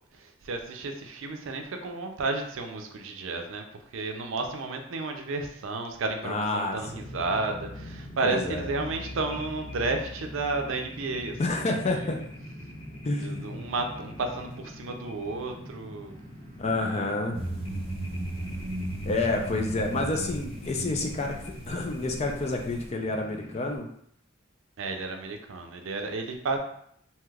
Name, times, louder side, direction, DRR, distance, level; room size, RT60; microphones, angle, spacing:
voice 1, 0.1-3.6 3.9-12.1 13.2-16.1 16.7-17.3 24.8-26.6, right 3 dB, 75° right, 4 dB, 0.5 m, -32 dB
voice 2, 6.2-7.1 8.2-8.6 11.4-12.2 13.0-13.6 16.6-17.4 19.0-23.9, left 2 dB, 35° left, 3 dB, 0.4 m, -29 dB
sound 1, 6.8-23.8, left 1 dB, 80° left, 1.2 m, -43 dB
sound 2, 17.3-22.9, right 1 dB, 30° right, 0.5 m, -36 dB
3.2 x 2.9 x 2.3 m, 0.68 s
head